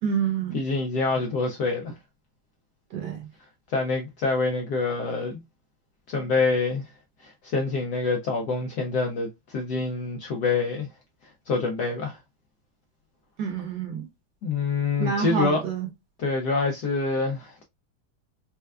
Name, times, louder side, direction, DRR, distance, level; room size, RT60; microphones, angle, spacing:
voice 1, 0.0-0.6 2.9-3.3 13.4-14.1 15.0-15.9, right 7 dB, 65° right, 1.2 m, -28 dB
voice 2, 0.5-1.9 3.7-5.4 6.1-6.8 7.2-10.9 11.5-12.2 14.4-15.6 16.2-17.6, left 4 dB, 75° left, 0.9 m, -26 dB
4.4 x 2.2 x 2.3 m
omnidirectional pair, 2.4 m